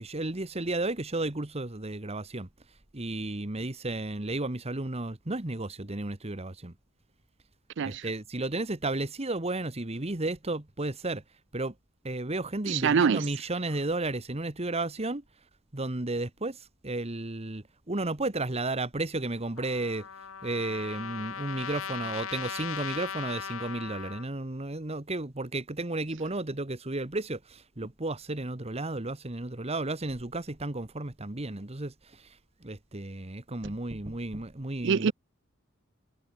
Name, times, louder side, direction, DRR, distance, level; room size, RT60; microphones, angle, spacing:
voice 1, 0.0-2.5 2.9-6.7 7.8-11.2 11.5-11.7 12.0-15.2 15.7-20.1 20.4-35.1, right 2 dB, 30° right, 1.5 m, -33 dB
voice 2, 12.7-13.3 34.8-35.1, right 6 dB, 60° right, 0.4 m, -24 dB
Trumpet, 19.6-24.3, left 7 dB, 80° left, 1.3 m, -38 dB
head